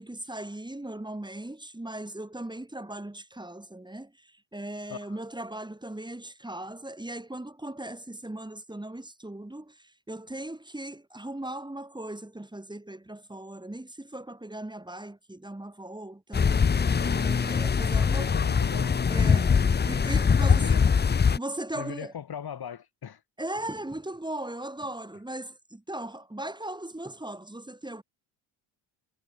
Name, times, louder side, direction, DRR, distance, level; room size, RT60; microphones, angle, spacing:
voice 1, 0.0-16.7 17.0-18.4 18.8-19.6 19.8-20.8 21.3-22.1 23.4-28.0, right 1 dB, 10° right, 3.3 m, -38 dB
sound 1, 16.3-21.4, left 6 dB, 20° left, 0.6 m, -23 dB
voice 2, 18.0-19.2 20.4-20.8 21.8-23.2, left 8 dB, 50° left, 2.6 m, -39 dB
cardioid pair, 90°, 49 cm